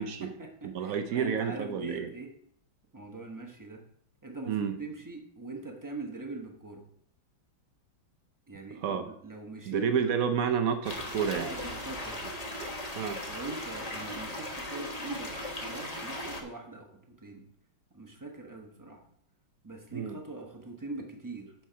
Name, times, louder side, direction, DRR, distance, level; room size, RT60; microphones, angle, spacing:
voice 1, 0.0-2.3 2.9-3.8 4.2-6.8 8.5-10.1 11.3-12.4 13.3-17.4 17.9-19.0 19.6-21.5, right 3 dB, 20° right, 1 dB, 0.5 m, -42 dB
voice 2, 0.7-2.1 4.5-4.7 8.8-9.1 9.7-11.5 13.0-13.2 19.9-20.2, right 7 dB, 75° right, 7 dB, 0.8 m, -30 dB
sound 1, 10.8-16.4, left 1 dB, 25° left, 1.0 m, -38 dB
9.0 x 4.6 x 5.6 m, 0.70 s
omnidirectional pair, 2.2 m